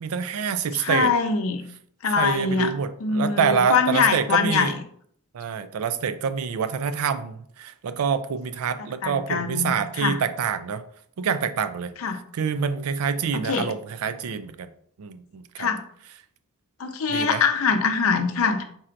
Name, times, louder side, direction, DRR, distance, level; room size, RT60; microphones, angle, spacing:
voice 1, 0.0-1.1 2.2-4.7 5.3-10.8 11.2-11.9 12.3-14.7 15.0-15.7 17.1-17.4, right 6 dB, 90° right, 12 dB, 0.4 m, -26 dB
voice 2, 0.7-1.6 2.0-2.7 3.0-4.7 9.0-10.2 12.0-12.2 13.3-13.7 15.6-15.8 16.8-18.6, left 5 dB, 70° left, 7 dB, 0.6 m, -23 dB
4.4 x 2.5 x 4.4 m, 0.62 s
head